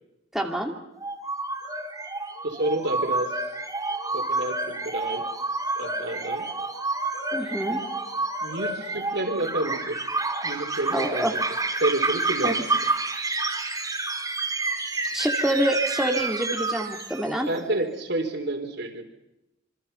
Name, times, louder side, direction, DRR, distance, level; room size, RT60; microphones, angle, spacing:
voice 1, 0.3-0.7 7.3-7.8 10.9-11.4 12.4-12.5 15.1-17.5, right 1 dB, ahead, 1 dB, 2.5 m, -26 dB
sound 1, 1.0-17.5, right 3 dB, 20° right, 4.2 m, -29 dB
voice 2, 2.4-3.3 4.1-5.3 5.8-6.5 8.4-10.0 10.4-11.3 11.8-12.6 17.5-19.0, right 2 dB, 60° right, 4 dB, 4.3 m, -29 dB
27.5 x 26.0 x 5.7 m, 0.90 s
head